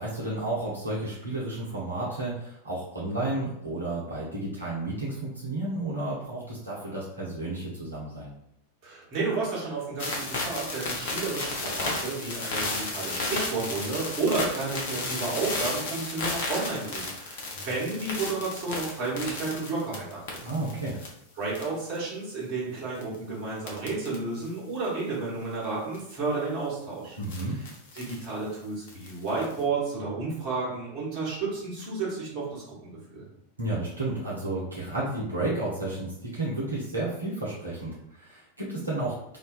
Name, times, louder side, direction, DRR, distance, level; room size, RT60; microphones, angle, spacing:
voice 1, 0.0-8.3 20.4-21.0 27.2-27.6 33.6-39.4, right 2 dB, 80° right, -6 dB, 0.6 m, -32 dB
voice 2, 8.8-20.4 21.4-27.2 27.5-27.7 27.9-33.3, right 3 dB, 40° right, -4 dB, 1.0 m, -32 dB
sound 1, 10.0-21.1 21.5-22.0 22.9-23.1 23.7-24.1 24.4-24.5 25.9-26.1 27.2-28.2 28.9-29.6, left 2 dB, 55° left, 0.6 m, -33 dB
2.4 x 2.2 x 2.4 m, 0.79 s
figure-of-eight pair, 90°, 0 cm